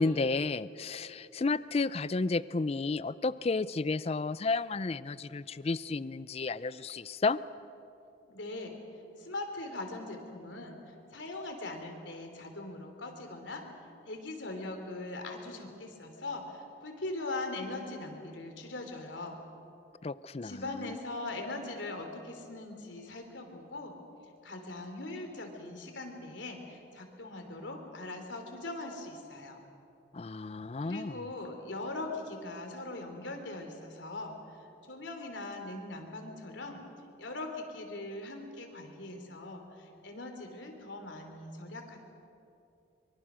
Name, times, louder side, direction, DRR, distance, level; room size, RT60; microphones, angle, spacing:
voice 1, 0.0-7.4 20.0-20.5 20.8-20.9 30.1-31.2, left 3 dB, 35° left, 17 dB, 0.4 m, -32 dB
voice 2, 8.3-19.4 20.4-23.9 24.4-29.6 30.8-36.8 37.2-42.0, left 2 dB, 75° left, 4 dB, 3.3 m, -41 dB
24.5 x 23.5 x 6.3 m, 2.7 s
head